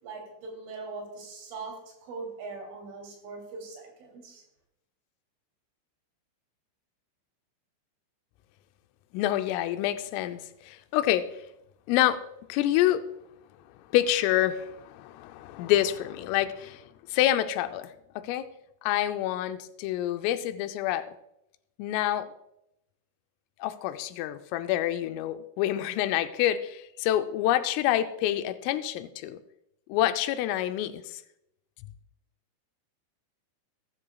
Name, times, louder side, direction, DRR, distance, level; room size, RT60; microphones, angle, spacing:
voice 1, 0.0-4.4, right 3 dB, 70° right, 1 dB, 5.2 m, -41 dB
voice 2, 9.1-11.3 11.9-12.2 12.5-13.0 13.9-18.5 18.8-21.1 21.8-22.3 23.6-29.4 29.9-31.2, left 13 dB, 85° left, 10 dB, 3.2 m, -27 dB
18.0 x 13.0 x 2.3 m, 0.84 s
omnidirectional pair, 5.9 m